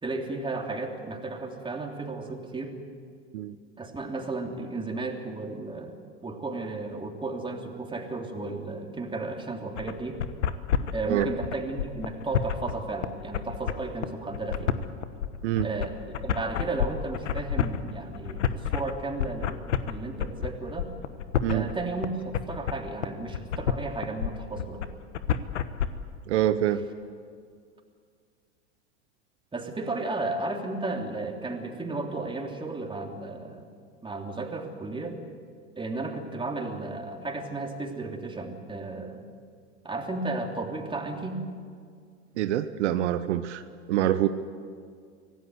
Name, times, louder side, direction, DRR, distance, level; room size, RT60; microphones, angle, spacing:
voice 1, 0.0-2.8 3.8-5.9 6.2-10.2 10.9-14.7 15.6-20.9 21.5-24.8 29.5-33.7 34.0-35.2 35.7-39.2 39.8-41.4, right 3 dB, 15° right, 2 dB, 3.4 m, -34 dB
sound 1, 9.8-25.9, left 9 dB, 90° left, 1.2 m, -29 dB
voice 2, 26.3-26.8 42.4-43.6 43.9-44.3, right 12 dB, 75° right, 10 dB, 1.0 m, -25 dB
25.0 x 17.5 x 8.2 m, 2.1 s
hypercardioid pair, 95°, 35 cm